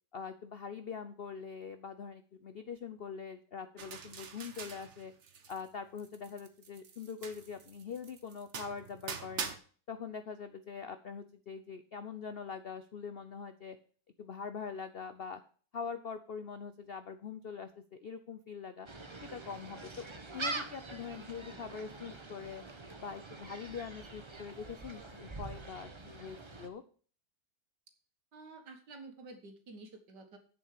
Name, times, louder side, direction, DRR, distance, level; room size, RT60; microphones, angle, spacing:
voice 1, 0.1-5.1 5.5-9.5 9.9-13.8 14.2-15.4 15.7-18.9 19.2-20.1 20.3-22.6 23.0-26.8, left 6 dB, 85° left, 10 dB, 0.5 m, -43 dB
sound 1, 3.8-5.7 6.0-9.6, right 6 dB, 45° right, 1.1 m, -44 dB
Gull seagull, 18.9-26.7, right 3 dB, 25° right, 0.7 m, -44 dB
voice 2, 28.3-30.4, right 3 dB, 65° right, 6 dB, 2.2 m, -50 dB
8.3 x 7.1 x 6.6 m, 0.42 s
omnidirectional pair, 2.0 m